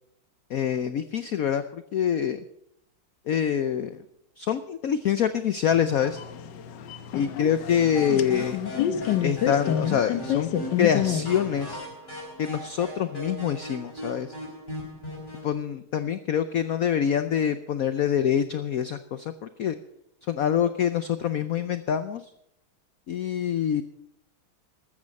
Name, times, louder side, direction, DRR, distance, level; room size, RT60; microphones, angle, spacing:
voice 1, 0.5-2.4 3.3-4.0 4.4-6.2 7.1-8.6 9.2-10.5 10.8-11.8 12.4-14.3 15.4-19.8 20.3-22.2 23.1-23.8, left 8 dB, 90° left, 11 dB, 0.7 m, -25 dB
sound 1, 5.7-11.8, left 10 dB, 65° left, 1.4 m, -29 dB
sound 2, 7.9-15.5, left 1 dB, 20° left, 4.8 m, -38 dB
14.0 x 13.5 x 5.3 m, 0.76 s
omnidirectional pair, 2.3 m